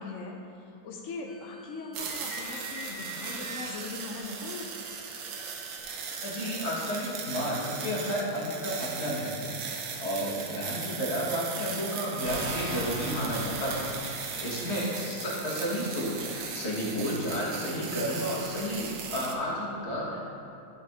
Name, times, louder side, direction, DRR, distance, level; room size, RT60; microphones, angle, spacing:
voice 1, 0.0-4.7 14.7-14.8, left 3 dB, 75° left, 1 dB, 0.7 m, -40 dB
sound 1, 1.3-7.1, right 1 dB, 25° right, 1.1 m, -46 dB
sound 2, 1.9-19.3, right 6 dB, 70° right, 1.3 m, -38 dB
voice 2, 6.2-9.6 10.0-20.2, equal, 40° left, -5 dB, 1.5 m, -32 dB
sound 3, 12.3-19.2, equal, 45° right, 0.5 m, -43 dB
11.0 x 4.2 x 3.5 m, 2.7 s
omnidirectional pair, 2.0 m